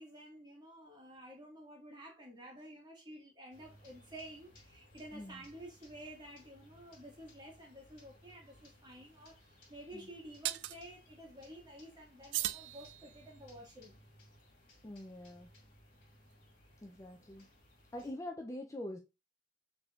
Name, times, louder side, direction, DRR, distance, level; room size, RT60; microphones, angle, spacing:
voice 1, 0.0-14.0, right 1 dB, 25° right, 1.8 m, -51 dB
sound 1, 3.5-18.1, left 1 dB, 50° left, 2.1 m, -62 dB
voice 2, 5.1-5.4 9.9-10.1 14.8-15.5 16.8-17.5 17.9-19.0, left 1 dB, 15° left, 0.5 m, -44 dB
sound 2, 8.5-8.6 10.4-10.8 12.3-13.4, right 15 dB, 80° right, 0.3 m, -38 dB
6.1 x 3.5 x 2.4 m
head